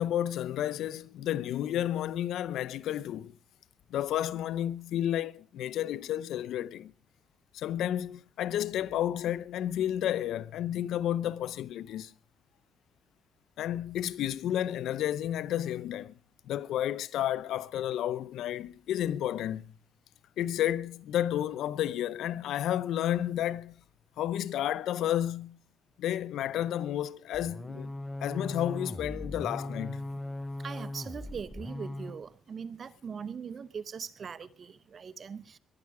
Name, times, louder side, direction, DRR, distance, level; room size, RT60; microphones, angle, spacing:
voice 1, 0.0-3.3 3.9-6.9 7.5-12.1 13.6-16.2 16.5-19.7 20.4-23.8 24.2-25.6 26.0-27.9 28.2-30.0, left 11 dB, 80° left, 0.7 m, -31 dB
sound 1, 27.3-32.2, left 1 dB, 10° left, 0.8 m, -38 dB
voice 2, 30.6-35.6, right 6 dB, 45° right, 0.9 m, -41 dB
20.5 x 11.5 x 4.8 m
cardioid pair, 90°, 0 cm